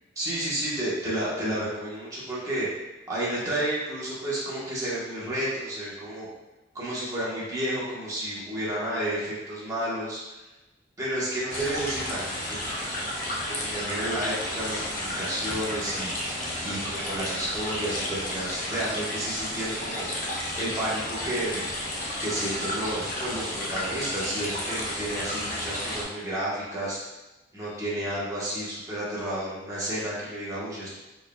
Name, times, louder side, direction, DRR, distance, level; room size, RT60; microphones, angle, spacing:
voice 1, 0.2-2.7 3.1-6.3 6.7-10.2 11.0-12.4 13.5-20.1 20.5-21.7 22.2-27.0 27.5-30.9, right 1 dB, 15° right, -8 dB, 1.1 m, -31 dB
sound 1, 11.5-26.0, left 1 dB, 45° left, 0.8 m, -32 dB
4.6 x 3.4 x 2.2 m, 1.1 s
head